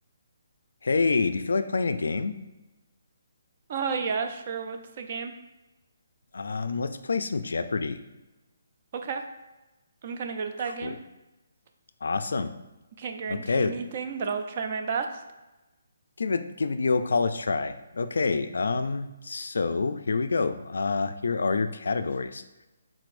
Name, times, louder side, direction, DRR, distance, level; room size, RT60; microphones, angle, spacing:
voice 1, 0.8-2.4 6.3-8.0 10.8-11.0 12.0-12.5 13.3-13.7 16.2-22.4, left 4 dB, 80° left, 10 dB, 0.3 m, -27 dB
voice 2, 3.7-5.3 8.9-9.2 10.0-11.0 13.0-15.2, right 5 dB, 35° right, 6 dB, 0.3 m, -32 dB
4.8 x 3.7 x 2.5 m, 1.0 s
hypercardioid pair, 170°, 0 cm